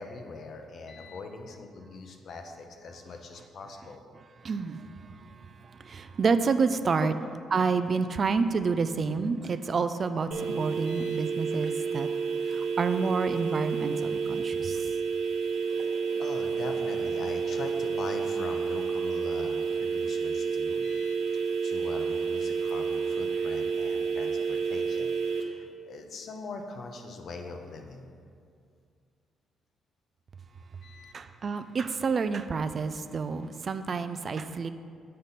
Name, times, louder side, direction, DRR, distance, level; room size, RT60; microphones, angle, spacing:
voice 1, 0.0-4.0 7.0-7.1 10.9-11.2 16.2-21.2 21.6-28.1 30.8-31.1, left 3 dB, 60° left, 4 dB, 0.8 m, -42 dB
voice 2, 4.4-5.3 5.6-7.1 7.5-12.1 12.5-14.9 31.1-34.7, right 5 dB, 45° right, 11 dB, 0.3 m, -29 dB
sound 1, 10.3-25.4, right 5 dB, 70° right, 0.9 m, -30 dB
7.7 x 5.1 x 4.1 m, 2.2 s
cardioid pair, 90°, 0 cm